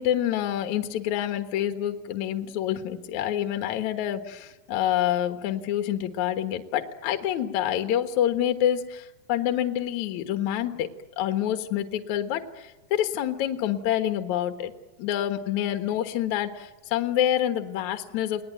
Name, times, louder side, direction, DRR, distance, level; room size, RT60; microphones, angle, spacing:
voice 1, 0.0-10.9 11.2-14.7 15.0-18.4, left 11 dB, 60° left, 7 dB, 2.4 m, -27 dB
30.0 x 20.0 x 9.2 m, 1.1 s
omnidirectional pair, 4.5 m